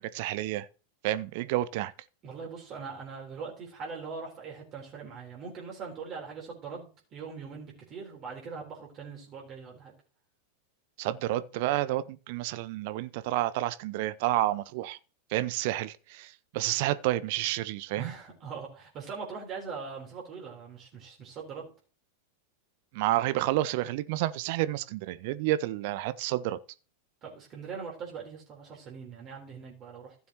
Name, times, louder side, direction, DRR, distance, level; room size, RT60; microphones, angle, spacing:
voice 1, 0.1-0.7 1.0-1.9 11.0-15.0 15.3-18.1 22.9-26.6, right 15 dB, 50° right, 0.6 m, -30 dB
voice 2, 2.2-9.9 18.0-21.7 27.2-30.1, right 5 dB, 30° right, 3.9 m, -41 dB
15.5 x 7.1 x 3.0 m
figure-of-eight pair, 90°, 0 cm